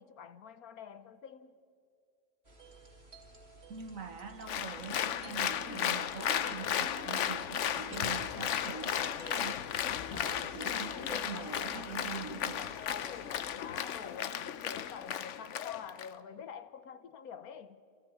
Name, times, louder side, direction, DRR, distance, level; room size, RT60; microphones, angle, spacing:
voice 1, 0.0-1.5 10.7-11.7 12.2-17.8, left 7 dB, 80° left, 1.5 m, -47 dB
sound 1, 2.4-13.6, right 2 dB, 45° right, 2.8 m, -56 dB
voice 2, 3.7-12.6, right 5 dB, 65° right, 1.9 m, -44 dB
Applause, 4.5-16.1, left 9 dB, 60° left, 0.9 m, -35 dB
28.5 x 28.0 x 4.8 m
omnidirectional pair, 1.5 m